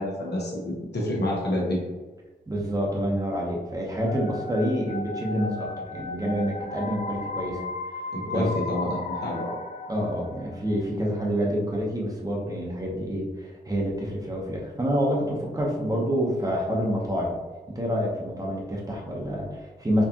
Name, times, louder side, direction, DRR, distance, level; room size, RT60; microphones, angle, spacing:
voice 1, 0.0-1.8 8.1-9.5, left 1 dB, 75° left, -4 dB, 1.2 m, -28 dB
voice 2, 2.5-7.6 8.3-8.5 9.9-17.4 17.7-20.0, equal, 20° right, -3 dB, 1.0 m, -27 dB
sound 1, 3.9-10.7, left 2 dB, 45° left, 0.4 m, -35 dB
4.4 x 2.5 x 2.9 m, 1.3 s
cardioid pair, 60°, 18 cm